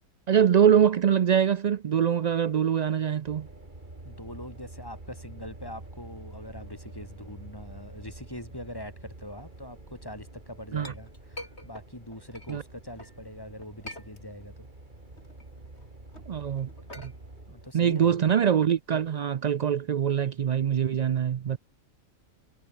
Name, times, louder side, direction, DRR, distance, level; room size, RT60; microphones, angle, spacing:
voice 1, 0.3-3.5 10.7-10.9 12.5-12.6 16.3-16.7 17.0-17.1 17.7-21.6, right 8 dB, 80° right, 0.3 m, -23 dB
sound 1, 3.2-17.7, right 2 dB, 35° right, 3.7 m, -47 dB
voice 2, 4.0-14.7 17.5-18.2, left 1 dB, 15° left, 5.0 m, -43 dB
Chink clink, 10.3-13.2 13.6-14.7 15.0-19.1, left 1 dB, 55° left, 8.2 m, -47 dB
omnidirectional pair, 1.4 m